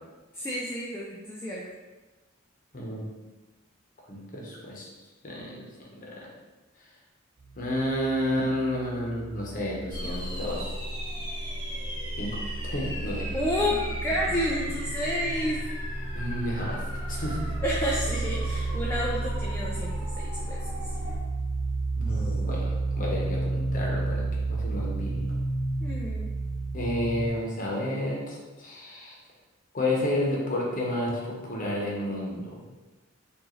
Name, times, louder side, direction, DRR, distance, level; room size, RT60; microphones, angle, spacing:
voice 1, 0.4-1.6 13.3-13.8 14.0-15.6 17.6-19.9 20.3-20.6 25.8-26.3, equal, 10° left, -3 dB, 0.3 m, -30 dB
voice 2, 2.7-3.0 4.1-4.9 5.2-5.7 6.0-6.3 7.6-10.7 12.1-12.4 12.6-13.3 16.1-16.8 17.1-17.5 22.0-25.2 26.7-29.1 29.7-32.7, left 1 dB, 40° left, -3 dB, 0.9 m, -31 dB
sound 1, 7.4-11.2 11.5-27.3, right 3 dB, 85° right, 0.7 m, -33 dB
sound 2, 9.9-21.2, equal, 20° right, 1.1 m, -35 dB
4.7 x 2.5 x 3.1 m, 1.2 s
head